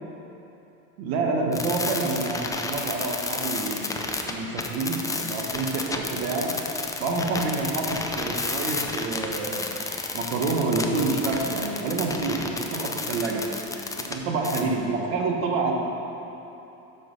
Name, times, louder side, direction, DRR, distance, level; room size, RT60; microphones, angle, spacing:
voice 1, 1.0-3.9 4.3-6.6 7.0-9.8 10.1-13.4 14.1-15.7, right 3 dB, 90° right, 1 dB, 1.1 m, -27 dB
sound 1, 1.5-14.1 14.4-14.6, left 3 dB, 10° left, 0.3 m, -31 dB
5.9 x 4.9 x 6.4 m, 3.0 s
supercardioid pair, 110°, 40 cm